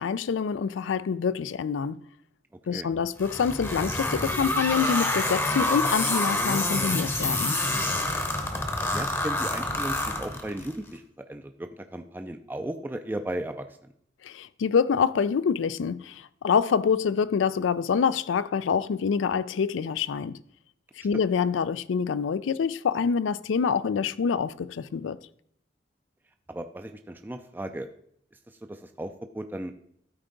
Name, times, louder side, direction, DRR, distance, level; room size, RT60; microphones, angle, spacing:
voice 1, 0.0-2.0 2.7-7.6 14.2-20.4 21.0-25.2, left 6 dB, 85° left, 0.4 m, -26 dB
sound 1, 3.2-10.7, left 2 dB, 15° left, 0.8 m, -27 dB
voice 2, 8.8-13.9 21.1-21.2 26.5-27.9 28.5-29.7, right 1 dB, 10° right, 0.3 m, -36 dB
12.5 x 4.5 x 3.8 m
head